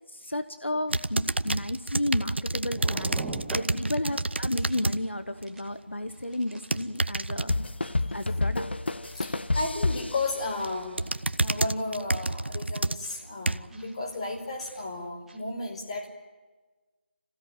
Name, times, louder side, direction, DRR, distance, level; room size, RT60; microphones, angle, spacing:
voice 1, 0.1-3.1 3.5-7.5 7.8-8.7, left 1 dB, 85° left, 10 dB, 1.3 m, -32 dB
sound 1, 0.8-0.9 1.4-2.3 2.7-4.0 4.4-5.1 5.5-5.7 6.1-7.1 7.6-8.0 9.0-9.2 9.9-10.1 10.6-10.8 11.4-11.7 12.1-12.4 13.0-13.2 13.7-13.9 14.6-14.8 15.3-15.4, right 2 dB, 5° right, 1.7 m, -43 dB
sound 2, 0.9-5.0 5.4-5.7 6.5-7.5 9.9-10.3 10.6-13.8 14.4-14.5, right 2 dB, 70° right, 0.9 m, -29 dB
sound 3, 7.5-11.1, left 2 dB, 65° left, 1.0 m, -29 dB
voice 2, 9.1-16.1, left 2 dB, 30° left, 1 dB, 5.0 m, -34 dB
27.0 x 16.5 x 9.2 m, 1.3 s
figure-of-eight pair, 160°, 6 cm